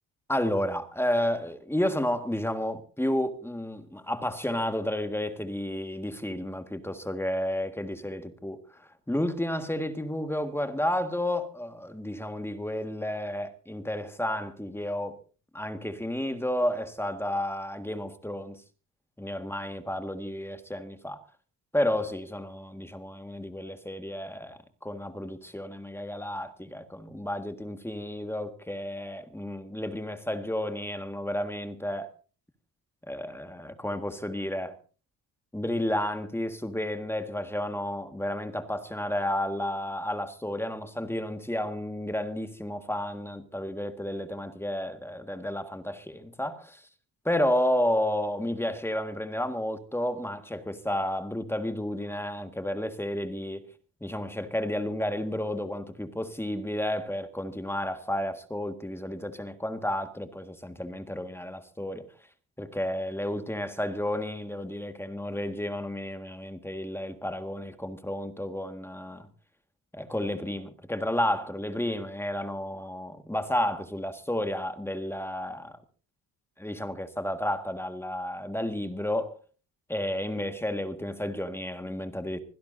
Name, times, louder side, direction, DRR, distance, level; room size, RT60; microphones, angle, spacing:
voice 1, 0.3-15.2 15.5-18.6 19.2-21.2 21.7-32.1 33.1-34.8 35.5-46.8 47.2-53.6 54.0-62.1 62.6-69.3 69.9-75.8 76.6-79.4 79.9-82.4, left 1 dB, 5° left, 1.7 m, -31 dB
25.5 x 16.5 x 2.7 m
cardioid pair, 110°, 37 cm